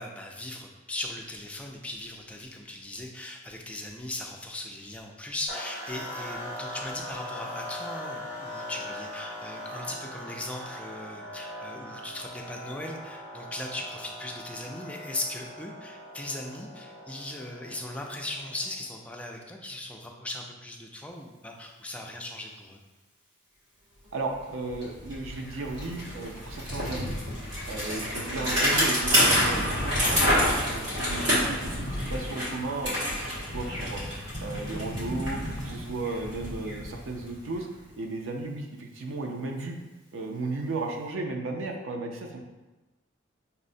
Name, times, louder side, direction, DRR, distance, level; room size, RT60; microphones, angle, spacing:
voice 1, 0.0-22.8, left 1 dB, 5° left, 0 dB, 0.3 m, -38 dB
sound 1, 5.5-18.9, left 1 dB, 10° right, 1.0 m, -40 dB
voice 2, 24.1-27.1 27.7-30.4 30.7-34.0 34.4-37.7 38.0-39.8 40.1-42.4, right 3 dB, 90° right, 2 dB, 0.5 m, -35 dB
Bicycle, 24.3-24.4 24.7-37.6, equal, 65° right, 1.4 m, -28 dB
5.4 x 2.1 x 2.6 m, 1.1 s
head